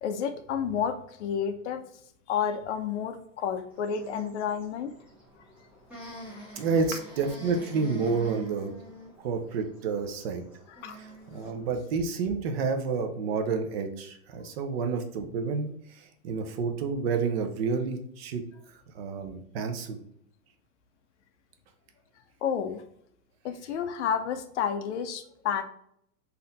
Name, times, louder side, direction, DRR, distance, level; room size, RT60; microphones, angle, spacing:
voice 1, 0.0-1.8 2.3-4.9 6.0-6.1 10.8-11.0 22.4-22.8 23.4-25.6, left 7 dB, 55° left, 9 dB, 0.6 m, -30 dB
sound 1, 3.7-11.7, equal, 5° right, 1.1 m, -47 dB
voice 2, 6.6-8.7 9.2-10.5 10.9-15.7 16.0-18.4 18.9-20.0, right 5 dB, 45° right, 6 dB, 0.7 m, -29 dB
4.2 x 2.7 x 3.8 m, 0.71 s
supercardioid pair, 155°, 44 cm